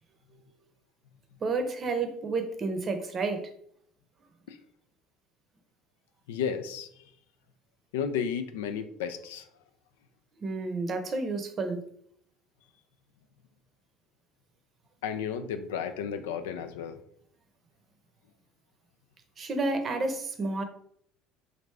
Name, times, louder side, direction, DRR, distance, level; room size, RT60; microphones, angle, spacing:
voice 1, 1.4-3.4 10.4-11.8 19.4-20.6, right 3 dB, 40° right, 7 dB, 0.6 m, -30 dB
voice 2, 6.3-6.9 7.9-9.5 15.0-17.0, left 7 dB, 85° left, 9 dB, 0.3 m, -33 dB
3.2 x 2.5 x 3.2 m, 0.67 s
supercardioid pair, 80°, 0 cm